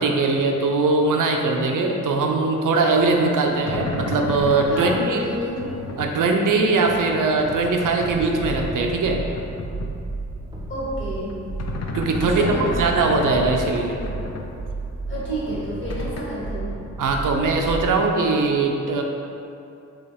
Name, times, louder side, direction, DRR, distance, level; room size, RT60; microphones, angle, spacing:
voice 1, 0.0-5.2 6.0-9.2 11.9-14.0 17.0-19.0, right 3 dB, 85° right, 2 dB, 0.5 m, -21 dB
sound 1, 2.9-10.2 10.5-14.5 14.9-16.2, left 3 dB, 55° left, 0.4 m, -33 dB
voice 2, 4.7-5.7 10.7-11.4 12.2-12.8 15.1-16.8, equal, 40° left, -8 dB, 1.4 m, -30 dB
sound 2, 8.1-17.9, right 3 dB, 15° right, 0.3 m, -33 dB
4.6 x 3.0 x 3.5 m, 2.6 s
wide cardioid pair, 165°, 31 cm